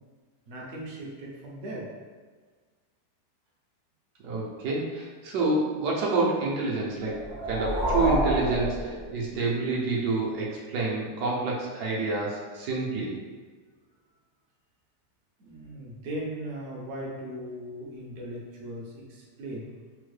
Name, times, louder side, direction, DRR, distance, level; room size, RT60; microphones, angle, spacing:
voice 1, 0.5-1.9 15.4-19.7, right 1 dB, 60° right, -3 dB, 0.8 m, -38 dB
voice 2, 4.2-13.2, right 3 dB, 75° right, -4 dB, 1.2 m, -28 dB
sound 1, 7.0-9.6, equal, 40° left, 0.7 m, -29 dB
3.5 x 2.1 x 3.1 m, 1.4 s
omnidirectional pair, 1.8 m